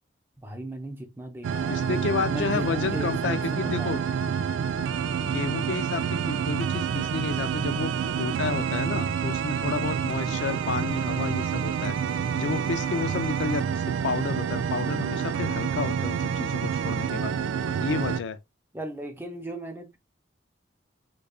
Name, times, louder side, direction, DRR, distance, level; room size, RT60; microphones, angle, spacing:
voice 1, 0.4-4.0 18.7-20.0, right 1 dB, 10° right, 0.5 m, -37 dB
sound 1, 1.4-18.2, right 7 dB, 90° right, 0.3 m, -28 dB
voice 2, 1.7-4.0 5.2-12.0 12.4-17.3 17.8-18.4, left 5 dB, 70° left, 0.4 m, -31 dB
5.1 x 2.3 x 2.3 m
head